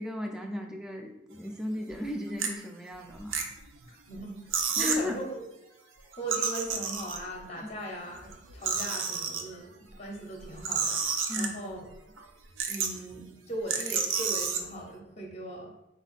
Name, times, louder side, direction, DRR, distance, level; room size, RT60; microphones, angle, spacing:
voice 1, 0.0-3.4 4.8-5.2 11.3-11.5, left 1 dB, 5° right, 3 dB, 0.3 m, -35 dB
sound 1, 1.8-2.0 2.4-2.5 3.1-3.8 4.2-4.3 4.5-5.1 6.1-7.4 8.1-9.4 10.4-11.8 12.2-12.3 12.6-13.1 13.7-14.6, right 6 dB, 75° right, 0.5 m, -30 dB
voice 2, 3.9-5.4 6.2-9.7 10.0-11.0 11.4-11.9 12.7-15.8, right 1 dB, 30° left, 1 dB, 0.7 m, -39 dB
4.4 x 2.4 x 4.0 m, 0.87 s
head